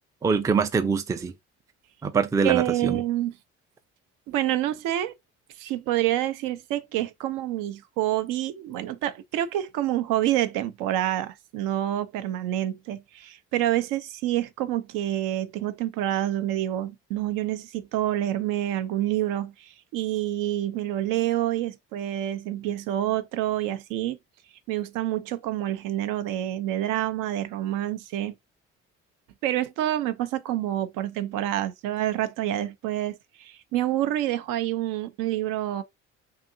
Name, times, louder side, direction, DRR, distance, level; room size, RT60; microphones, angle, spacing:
voice 1, 0.2-1.3 2.0-3.0, right 5 dB, 10° right, 0.3 m, -24 dB
voice 2, 2.4-3.3 4.3-5.1 5.6-24.2 24.7-28.3 29.4-35.8, right 13 dB, 70° right, 0.5 m, -27 dB
2.7 x 2.5 x 2.6 m
hypercardioid pair, 60°, 33 cm